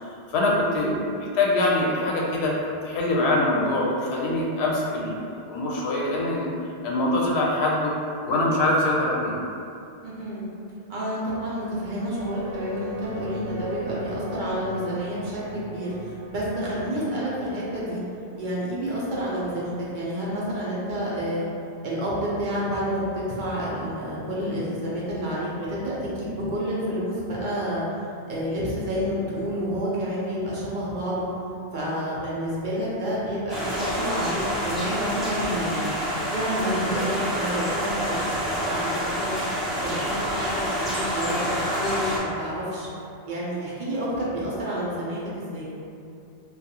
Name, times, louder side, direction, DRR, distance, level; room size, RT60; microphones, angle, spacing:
voice 1, 0.3-2.5 2.8-5.2 5.5-6.5 6.8-7.9 8.3-9.4, left 2 dB, 75° left, -3 dB, 0.8 m, -23 dB
voice 2, 10.0-10.4 10.9-18.0 18.4-21.5 21.8-27.9 28.3-31.3 31.7-35.9 36.3-39.4 39.8-42.9 43.3-45.7, equal, 55° right, -7 dB, 0.7 m, -29 dB
sound 1, 12.0-20.7, equal, 80° right, 0.9 m, -40 dB
sound 2, 33.5-42.2, equal, ahead, 0.4 m, -28 dB
2.4 x 2.3 x 2.8 m, 2.6 s
omnidirectional pair, 1.1 m